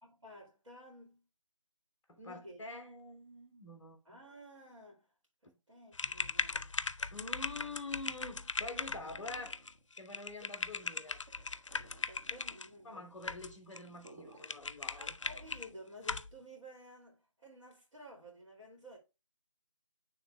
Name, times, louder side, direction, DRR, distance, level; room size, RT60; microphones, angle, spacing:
voice 1, 0.0-1.3 2.2-2.6 4.1-5.1 5.4-6.7 10.4-10.6 12.1-13.3 15.0-19.0, equal, 70° right, 2.3 m, -53 dB
voice 2, 2.1-4.2 7.1-9.6 10.0-11.2 12.8-15.2, left 2 dB, 5° left, 0.8 m, -46 dB
sound 1, 5.9-12.7 13.2-13.8 14.1-14.2 14.4-15.7 16.0-16.3, left 4 dB, 70° left, 0.4 m, -39 dB
sound 2, 8.1-16.0, right 2 dB, 40° right, 0.9 m, -61 dB
9.1 x 3.3 x 3.1 m
figure-of-eight pair, 155°, 16 cm